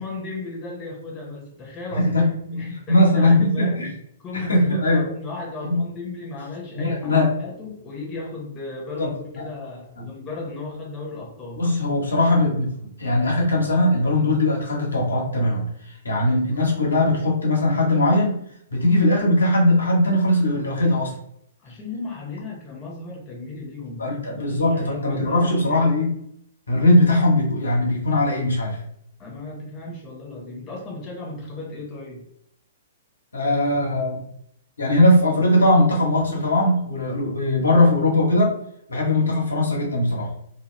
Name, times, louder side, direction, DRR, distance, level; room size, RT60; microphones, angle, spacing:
voice 1, 0.0-3.9 4.2-11.6 21.6-25.9 29.2-32.2, left 3 dB, 20° left, -2 dB, 1.1 m, -35 dB
voice 2, 1.9-3.9 4.3-5.1 5.6-5.8 6.7-7.3 9.0-9.1 9.3-9.4 11.5-15.6 16.0-18.4 18.7-21.1 24.0-26.1 26.7-28.8 33.3-34.2 34.8-38.5 38.9-40.3, left 1 dB, 80° left, -2 dB, 1.1 m, -20 dB
2.6 x 2.3 x 3.2 m, 0.71 s
figure-of-eight pair, 120°, 0 cm